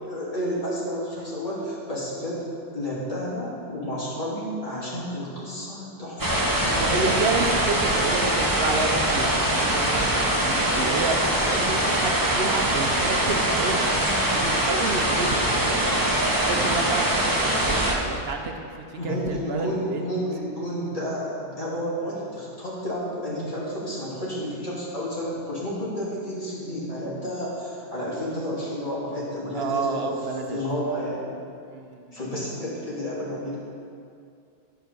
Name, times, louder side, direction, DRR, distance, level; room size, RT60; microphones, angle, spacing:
voice 1, 0.0-2.5 2.7-6.8 19.0-30.1 30.5-31.3 32.1-33.6, equal, 35° left, -8 dB, 2.5 m, -31 dB
sound 1, 6.2-18.0, right 1 dB, 20° right, 0.9 m, -23 dB
voice 2, 6.7-15.8 16.3-20.1 29.5-30.6 31.7-32.2, right 4 dB, 75° right, 4 dB, 0.9 m, -30 dB
10.5 x 4.6 x 6.6 m, 2.4 s
omnidirectional pair, 1.1 m